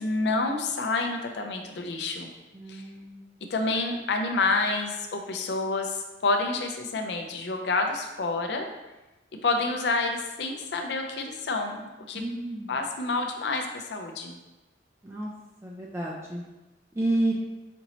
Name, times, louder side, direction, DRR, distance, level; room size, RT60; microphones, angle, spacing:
voice 1, 0.0-2.3 2.7-2.8 3.5-8.7 9.4-12.2 12.7-14.4, left 3 dB, 70° left, 4 dB, 0.5 m, -28 dB
voice 2, 2.5-3.2 12.2-12.7 15.0-15.3 15.6-16.4 17.0-17.3, right 1 dB, 15° right, -3 dB, 0.3 m, -30 dB
5.2 x 2.8 x 2.9 m, 1.1 s
head